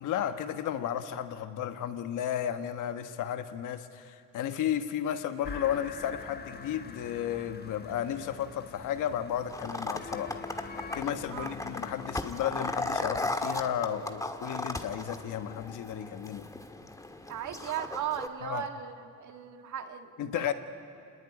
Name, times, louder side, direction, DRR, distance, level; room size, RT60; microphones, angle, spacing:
voice 1, 0.0-10.4 10.9-16.5 18.4-18.7 20.2-20.5, left 10 dB, 90° left, 9 dB, 1.4 m, -33 dB
sound 1, 5.4-13.3, left 4 dB, 35° left, 1.2 m, -45 dB
sound 2, 9.5-18.3, left 2 dB, 10° left, 1.6 m, -37 dB
voice 2, 17.3-20.5, right 10 dB, 75° right, 6 dB, 1.7 m, -37 dB
27.0 x 20.0 x 10.0 m, 2.5 s
cardioid pair, 90°, 30 cm